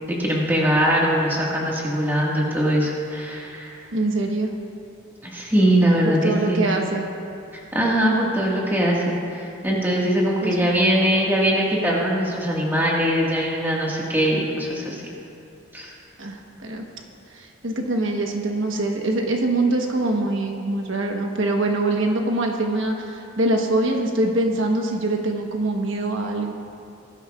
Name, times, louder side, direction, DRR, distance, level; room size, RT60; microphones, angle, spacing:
voice 1, 0.1-3.8 5.2-6.7 7.5-15.0 15.7-15.9, equal, 10° right, -4 dB, 1.7 m, -21 dB
voice 2, 3.9-4.5 6.1-7.1 10.4-10.6 16.2-16.8 17.3-26.5, right 2 dB, 75° right, 2 dB, 1.1 m, -24 dB
19.5 x 12.0 x 2.4 m, 2.5 s
head